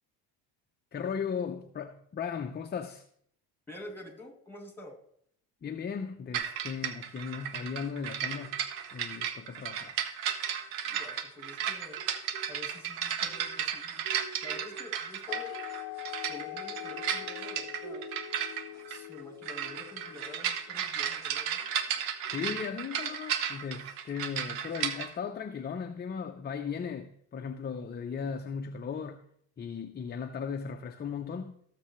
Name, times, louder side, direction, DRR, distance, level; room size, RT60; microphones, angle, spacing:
voice 1, 0.9-3.0 5.6-8.6 8.9-10.0 22.3-29.2 29.6-31.5, left 6 dB, 20° left, 0.6 m, -37 dB
voice 2, 3.7-5.0 10.8-12.0 12.5-14.0 14.4-15.5 16.3-18.0 18.7-21.6, left 2 dB, 5° left, 2.4 m, -48 dB
sound 1, 6.3-25.1, right 9 dB, 90° right, 1.0 m, -34 dB
sound 2, 8.4-9.0 10.3-10.9 11.4-12.9 13.3-15.2 15.5-16.1 16.8-19.7 20.3-20.9 21.5-22.6, right 4 dB, 40° right, 1.7 m, -52 dB
Church Bell, 15.3-20.7, left 20 dB, 70° left, 0.5 m, -43 dB
17.5 x 6.8 x 3.1 m
supercardioid pair, 100°, 44 cm